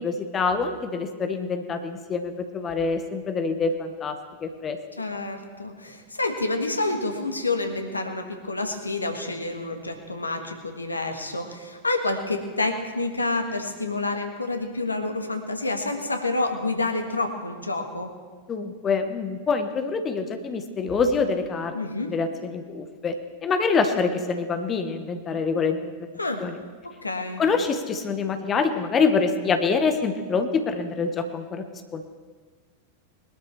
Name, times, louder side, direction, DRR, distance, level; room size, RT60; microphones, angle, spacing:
voice 1, 0.0-4.2 4.4-4.8 18.5-21.7 22.1-23.1 23.4-25.9 26.4-26.6 27.4-31.7 31.9-32.0, left 4 dB, 25° left, 7 dB, 1.1 m, -25 dB
voice 2, 5.0-18.1 21.7-22.1 26.2-26.4 26.8-27.4, left 2 dB, 80° left, 5 dB, 1.5 m, -28 dB
21.0 x 12.5 x 3.4 m, 1.5 s
figure-of-eight pair, 90°, 0 cm